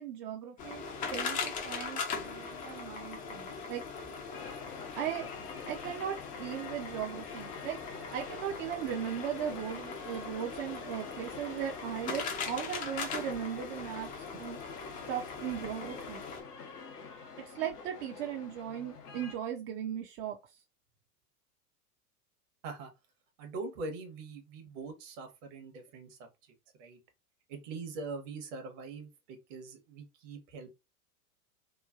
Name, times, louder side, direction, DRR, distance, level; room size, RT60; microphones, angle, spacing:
voice 1, 0.0-3.8 4.9-5.3 5.7-14.6 15.1-16.2 17.4-20.4, right 9 dB, 35° right, 0.5 m, -38 dB
sound 1, 0.6-16.4, left 5 dB, 20° left, 0.4 m, -40 dB
sound 2, 4.3-19.4, left 5 dB, 85° left, 0.8 m, -48 dB
voice 2, 23.4-27.0 27.5-30.7, right 3 dB, 55° right, 1.1 m, -43 dB
3.0 x 2.2 x 2.4 m
hypercardioid pair, 95°, 46 cm